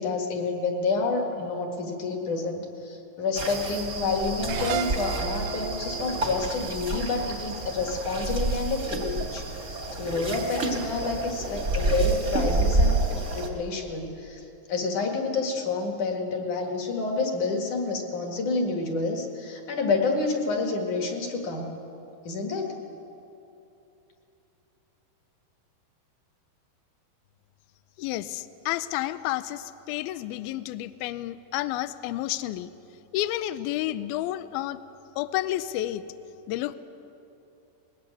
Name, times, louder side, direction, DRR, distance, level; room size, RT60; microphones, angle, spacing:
voice 1, 0.0-21.7 22.2-22.7, left 3 dB, 50° left, 2 dB, 2.9 m, -29 dB
sound 1, 3.3-13.5, right 2 dB, 30° right, 1.4 m, -29 dB
sound 2, 4.5-7.8, right 9 dB, 80° right, 2.5 m, -35 dB
voice 2, 28.0-32.7 33.1-34.8 35.2-36.0 36.5-36.7, left 14 dB, 85° left, 13 dB, 2.2 m, -30 dB
21.0 x 18.0 x 8.3 m, 2.9 s
omnidirectional pair, 5.1 m